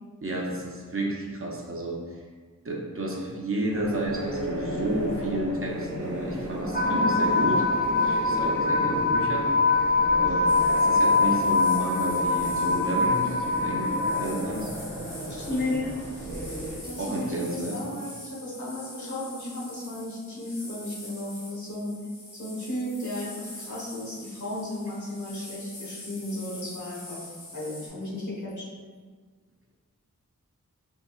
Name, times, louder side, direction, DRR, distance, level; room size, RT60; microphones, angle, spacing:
voice 1, 0.2-2.2 2.6-7.7 8.0-9.5 10.2-14.7 17.0-17.8, right 1 dB, 40° right, -1 dB, 0.5 m, -31 dB
sound 1, 3.7-16.8, right 1 dB, 65° right, 1.0 m, -35 dB
sound 2, 6.7-14.3, left 3 dB, 30° left, 0.4 m, -23 dB
sound 3, 10.5-27.9, left 1 dB, 85° left, 1.2 m, -44 dB
voice 2, 15.3-15.9 16.8-21.9 22.3-27.2 27.5-28.7, left 1 dB, 60° left, -7 dB, 1.0 m, -34 dB
3.6 x 2.7 x 2.3 m, 1.5 s
wide cardioid pair, 65°, 33 cm